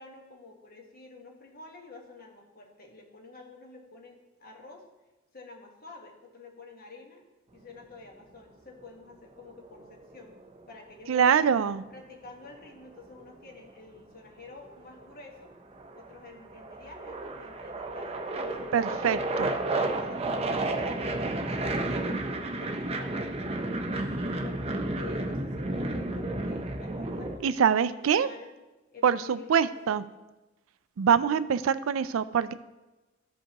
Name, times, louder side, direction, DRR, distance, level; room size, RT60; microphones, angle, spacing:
voice 1, 0.0-4.9 5.3-7.2 7.5-10.4 10.7-11.4 11.9-15.5 15.9-23.2 23.9-28.5 28.9-30.0, left 3 dB, 50° left, 1 dB, 1.4 m, -49 dB
sound 1, 9.5-10.6 12.4-13.7 14.7-15.1 15.4-27.4, right 2 dB, 30° right, 0.6 m, -32 dB
voice 2, 11.1-11.8 18.7-19.5 27.4-28.3 29.0-30.0 31.0-32.5, right 7 dB, 80° right, 15 dB, 0.4 m, -24 dB
14.0 x 5.2 x 2.9 m, 1.1 s
head